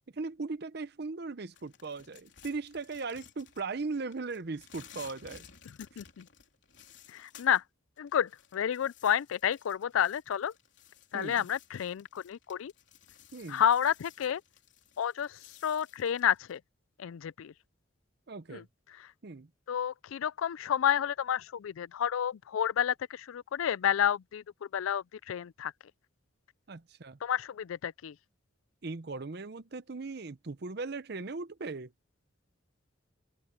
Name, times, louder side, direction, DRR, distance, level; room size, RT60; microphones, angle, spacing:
voice 1, 0.1-5.4 11.1-11.5 13.3-13.6 18.3-18.6 19.2-19.5 26.7-27.2 28.8-31.9, right 3 dB, 50° right, 0.7 m, -38 dB
sound 1, 1.5-3.8 4.1-7.6 8.0-16.6, left 8 dB, 60° left, 3.7 m, -56 dB
voice 2, 6.0-6.3 7.1-7.6 8.0-10.5 11.1-12.7 13.5-14.4 15.0-16.6 17.0-17.5 18.5-18.6 19.0-19.1 19.7-24.4 24.7-25.7 27.2-28.1, left 9 dB, 85° left, 0.4 m, -30 dB
head